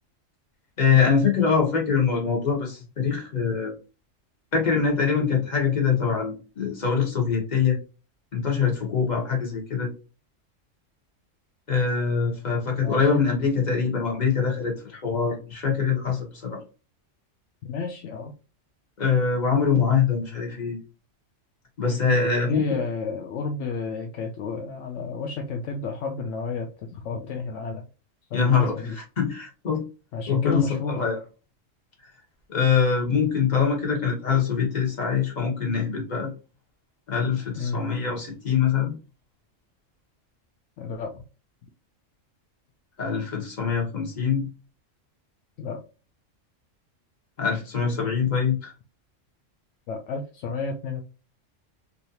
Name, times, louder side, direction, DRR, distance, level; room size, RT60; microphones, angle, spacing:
voice 1, 0.8-3.7 4.5-7.8 8.3-9.9 11.7-16.6 19.0-20.8 21.8-22.6 28.3-29.8 30.3-31.2 32.5-36.3 37.1-38.9 43.0-44.5 47.4-48.7, left 6 dB, 35° left, 0 dB, 1.3 m, -24 dB
voice 2, 12.8-13.3 17.6-18.3 22.1-27.9 28.3-29.0 30.1-31.1 37.6-37.8 40.8-41.2 45.6-45.8 49.9-51.0, left 4 dB, 75° left, 3 dB, 0.9 m, -31 dB
3.1 x 2.7 x 2.7 m, 0.33 s
omnidirectional pair, 1.3 m